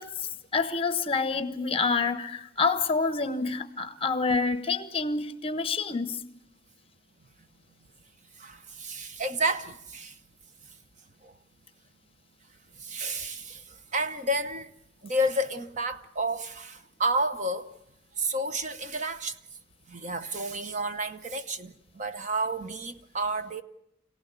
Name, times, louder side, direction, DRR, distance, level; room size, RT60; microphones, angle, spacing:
voice 1, 0.0-6.2, left 4 dB, 30° left, 1.1 m, -28 dB
voice 2, 8.4-10.1 11.2-11.3 12.8-13.6 13.9-14.7 15.0-17.7 18.2-19.3 19.9-23.6, right 1 dB, 40° right, 0.9 m, -30 dB
26.0 x 17.5 x 8.3 m
head